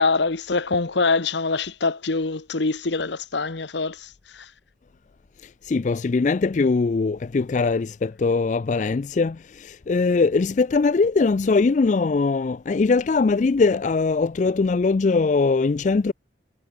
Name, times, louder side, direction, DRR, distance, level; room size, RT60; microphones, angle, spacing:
voice 1, 0.0-4.1 4.3-4.4, left 3 dB, 70° left, 1.1 m, -24 dB
voice 2, 5.7-16.1, left 4 dB, 40° left, 0.3 m, -21 dB
head